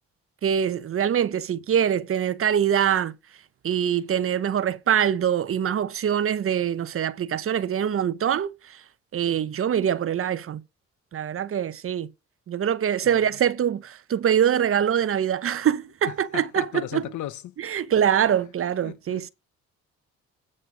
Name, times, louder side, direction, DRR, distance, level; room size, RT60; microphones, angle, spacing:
voice 1, 0.4-3.1 3.6-8.8 9.1-10.6 11.1-12.1 12.5-17.0 17.6-19.3, right 9 dB, 45° right, 0.8 m, -24 dB
voice 2, 13.0-13.4 16.0-17.5 18.8-19.3, left 13 dB, 75° left, 0.8 m, -36 dB
8.7 x 6.5 x 5.0 m
cardioid pair, 90°, 30 cm